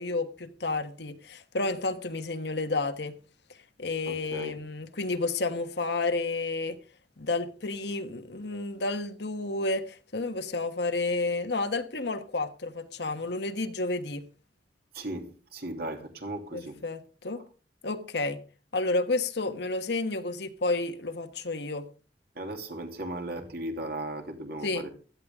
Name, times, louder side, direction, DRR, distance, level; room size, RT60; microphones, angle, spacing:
voice 1, 0.0-3.1 3.8-6.8 7.2-14.2 16.5-17.4 17.8-18.4 18.7-21.9 24.6-24.9, left 3 dB, 70° left, 1.4 m, -31 dB
voice 2, 4.1-4.5 14.9-16.8 22.3-24.9, right 1 dB, 60° right, 2.9 m, -36 dB
16.0 x 13.0 x 3.7 m
head